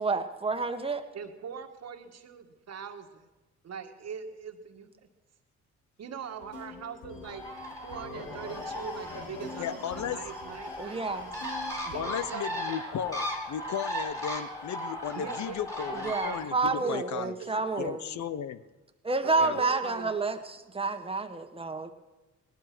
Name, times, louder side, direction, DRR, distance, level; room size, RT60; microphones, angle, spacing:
voice 1, 0.0-1.0 10.8-11.3 16.0-18.0 19.0-21.9, right 3 dB, 20° right, 6 dB, 1.5 m, -29 dB
voice 2, 1.1-3.3 3.6-5.1 6.0-7.5 7.8-11.3 11.8-12.8 15.2-16.1 16.8-18.2 19.2-20.2, right 6 dB, 60° right, 6 dB, 1.7 m, -42 dB
sound 1, 6.2-12.2, left 3 dB, 90° left, 4.3 m, -45 dB
Bird, 7.2-16.5, equal, 10° left, 3.8 m, -37 dB
voice 3, 9.6-10.2 11.9-17.3 17.8-18.6 19.4-19.6, left 9 dB, 65° left, 14 dB, 0.9 m, -35 dB
18.5 x 12.0 x 6.1 m, 1.1 s
cardioid pair, 90°, 30 cm